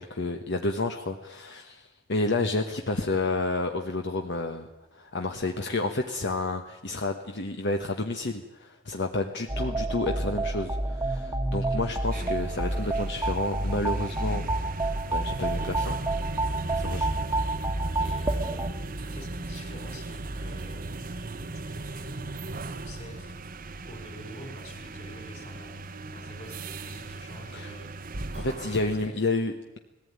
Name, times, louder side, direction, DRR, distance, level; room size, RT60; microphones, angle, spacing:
voice 1, 0.0-14.4 15.1-16.0 16.7-17.1 27.5-27.7 28.3-29.8, left 2 dB, 60° left, 4 dB, 1.2 m, -30 dB
voice 2, 9.4-9.7 11.6-12.0 16.9-17.1 17.9-23.4 23.9-25.8 26.1-27.9 28.3-29.2, equal, 35° left, 6 dB, 4.2 m, -48 dB
sound 1, 9.5-18.7, right 2 dB, 15° right, 1.3 m, -29 dB
sound 2, 12.0-29.1, right 2 dB, 45° right, 0.9 m, -38 dB
19.5 x 15.0 x 9.5 m, 1.0 s
head